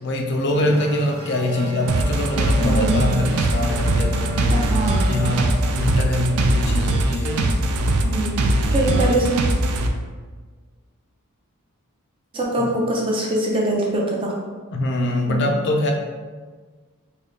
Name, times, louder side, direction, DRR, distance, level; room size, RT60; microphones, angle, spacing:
voice 1, 0.0-4.5 5.1-7.5 8.9-9.2 12.6-12.7 14.7-15.9, left 1 dB, 50° left, 2 dB, 0.4 m, -24 dB
sound 1, 0.5-7.8, left 1 dB, 10° left, 0.7 m, -33 dB
sound 2, 1.9-9.9, right 1 dB, 70° right, 0.4 m, -21 dB
voice 2, 2.6-3.2 4.5-5.3 8.0-9.3 12.3-14.3 15.2-15.5, right 1 dB, 25° right, -3 dB, 0.5 m, -23 dB
3.6 x 2.2 x 3.6 m, 1.4 s
head